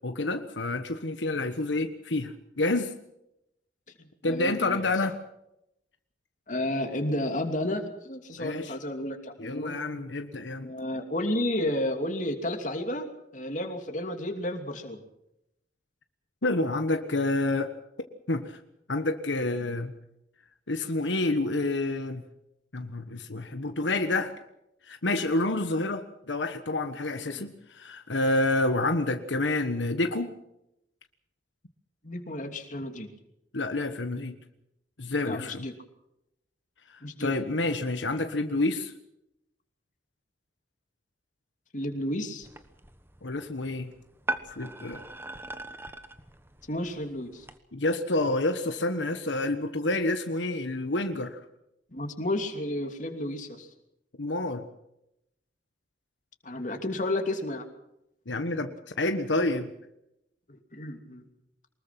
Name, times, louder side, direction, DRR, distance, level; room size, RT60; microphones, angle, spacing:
voice 1, 0.0-2.9 4.2-5.2 8.4-8.8 9.4-10.7 16.4-17.7 18.3-18.6 18.9-19.9 20.7-22.2 22.7-24.3 24.8-30.3 33.5-34.4 35.0-35.7 36.9-38.9 43.2-43.9 44.5-45.0 47.7-51.4 54.2-54.7 58.3-59.7, left 2 dB, 85° left, 7 dB, 1.4 m, -28 dB
voice 2, 4.2-4.8 6.5-9.8 10.6-13.1 13.3-15.0 27.2-27.5 32.0-33.1 35.2-35.7 37.0-37.3 41.7-42.5 46.7-47.4 51.9-53.7 56.4-57.7 60.7-61.2, left 1 dB, 45° left, 5 dB, 2.8 m, -32 dB
sound 1, 42.4-47.6, right 2 dB, 10° right, 1.2 m, -40 dB
24.0 x 21.0 x 6.0 m, 0.83 s
head